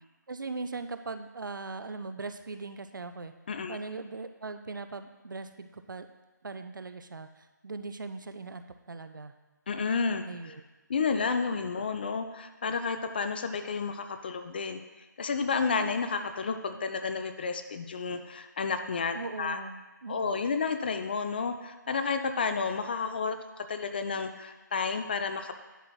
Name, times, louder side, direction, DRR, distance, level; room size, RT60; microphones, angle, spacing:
voice 1, 0.3-3.3 3.7-6.1 6.4-9.3 10.2-10.6 19.1-20.4, right 3 dB, 80° right, 9 dB, 0.5 m, -40 dB
voice 2, 3.5-3.8 9.7-10.2 10.9-14.8 15.2-19.6 20.1-25.6, left 5 dB, 30° left, 8 dB, 0.4 m, -31 dB
11.0 x 5.7 x 2.3 m, 1.2 s
figure-of-eight pair, 155°, 11 cm